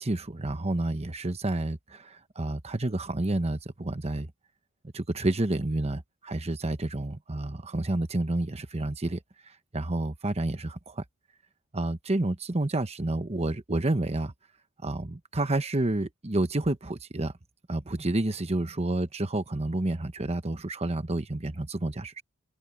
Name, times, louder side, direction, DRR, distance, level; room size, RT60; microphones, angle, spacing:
voice 1, 0.0-4.3 4.9-9.2 9.5-11.0 11.7-14.3 14.8-17.3 17.7-22.2, right 2 dB, 30° right, 1.1 m, -29 dB
open air
head